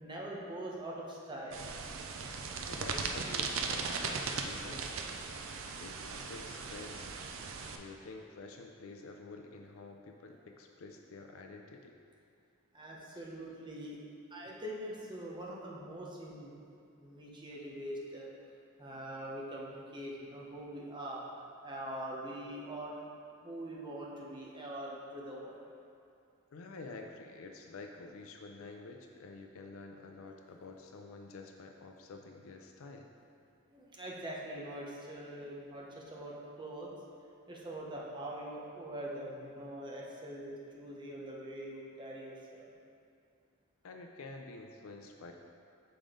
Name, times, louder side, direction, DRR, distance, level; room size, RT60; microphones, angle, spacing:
voice 1, 0.0-1.6 12.7-14.0 14.3-16.5 16.9-18.3 18.8-23.0 23.4-25.6 33.7-36.9 37.5-42.7, right 1 dB, 20° right, -4 dB, 0.9 m, -43 dB
sound 1, 1.5-7.8, right 4 dB, 70° right, 0.5 m, -38 dB
voice 2, 2.6-5.0 5.8-7.1 7.7-11.9 13.1-13.2 14.4-14.6 26.5-33.1 43.8-45.3, left 3 dB, 75° left, 3 dB, 0.4 m, -49 dB
6.8 x 5.0 x 3.7 m, 2.5 s
head